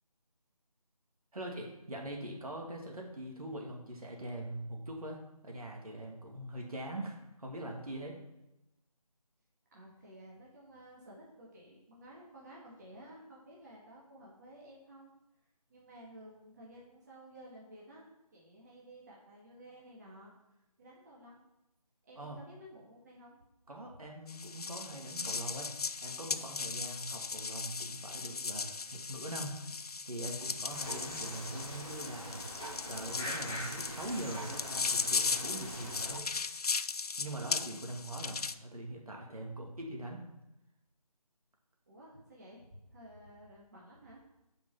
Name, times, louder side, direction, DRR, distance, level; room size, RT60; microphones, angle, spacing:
voice 1, 1.3-8.2 22.2-22.4 23.7-25.7 26.0-29.8 30.1-32.5 32.9-36.2 37.2-40.2, right 1 dB, 65° right, 0 dB, 2.3 m, -42 dB
voice 2, 9.7-15.1 15.7-20.3 20.8-21.4 22.0-23.4 23.9-24.0 37.8-38.0 41.9-44.2, right 1 dB, 25° right, -5 dB, 1.9 m, -54 dB
sound 1, 24.3-38.5, left 4 dB, 70° left, 0.5 m, -37 dB
sound 2, 30.7-36.2, right 1 dB, 5° left, 0.5 m, -43 dB
9.2 x 5.4 x 5.6 m, 0.91 s
figure-of-eight pair, 165°, 20 cm